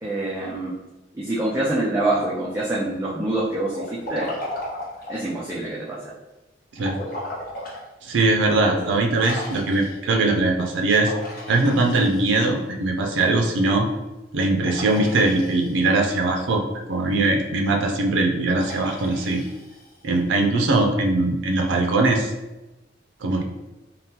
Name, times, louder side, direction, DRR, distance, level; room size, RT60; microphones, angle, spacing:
voice 1, 0.0-0.7 1.1-4.3 5.1-6.0 8.7-8.9, right 2 dB, 15° right, -7 dB, 0.4 m, -25 dB
Liquid, 3.7-5.3 6.8-7.8 8.3-8.4 9.2-10.1 11.0-12.6 14.6-16.0 18.5-20.2, left 1 dB, 55° left, 1.0 m, -35 dB
voice 2, 6.7-7.1 8.0-11.1 11.5-13.9 14.3-16.6 16.9-19.4 20.0-22.3 23.2-23.4, right 2 dB, 90° right, 2 dB, 0.4 m, -21 dB
3.5 x 2.1 x 2.8 m, 1.0 s
head